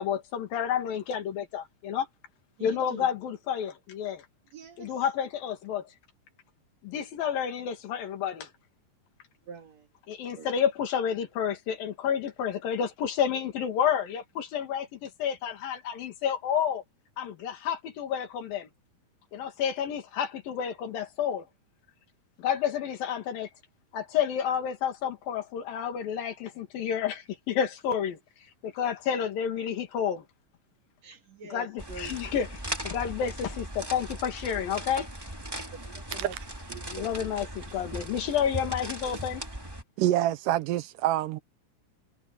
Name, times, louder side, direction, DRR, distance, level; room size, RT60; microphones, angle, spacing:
voice 1, 0.0-2.1 2.6-4.2 4.8-5.8 6.8-8.5 10.1-16.8 17.2-18.7 19.3-21.5 22.4-23.5 23.9-28.2 28.6-30.3 31.5-32.5 32.8-35.1 36.8-39.4, left 8 dB, 85° left, 3.9 m, -30 dB
voice 2, 2.6-3.1 4.5-5.0 9.4-9.9 10.3-10.5 31.0-32.2 35.8-36.3, right 4 dB, 50° right, 3.4 m, -45 dB
sound 1, 31.8-39.8, right 1 dB, 5° right, 2.6 m, -38 dB
voice 3, 36.7-37.0 40.0-41.4, right 13 dB, 80° right, 2.2 m, -27 dB
omnidirectional pair, 4.0 m